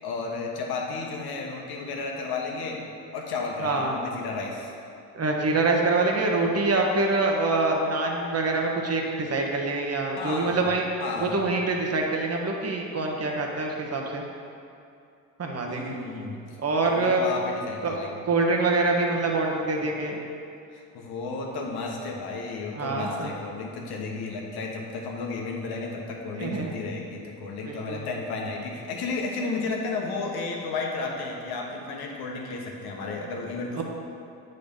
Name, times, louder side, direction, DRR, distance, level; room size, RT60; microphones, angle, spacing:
voice 1, 0.0-2.8 3.1-4.7 10.2-10.7 11.0-11.4 15.7-16.4 16.8-18.2 20.9-33.8, left 3 dB, 70° left, 0 dB, 1.4 m, -33 dB
voice 2, 3.6-4.0 5.1-10.9 11.2-14.2 15.4-15.9 16.6-17.2 17.8-18.0 18.3-20.2 22.7-23.3 26.4-26.7 27.6-28.0 33.7-33.8, right 3 dB, 40° right, 0 dB, 1.4 m, -25 dB
8.3 x 4.1 x 5.5 m, 2.5 s
supercardioid pair, 60°, 39 cm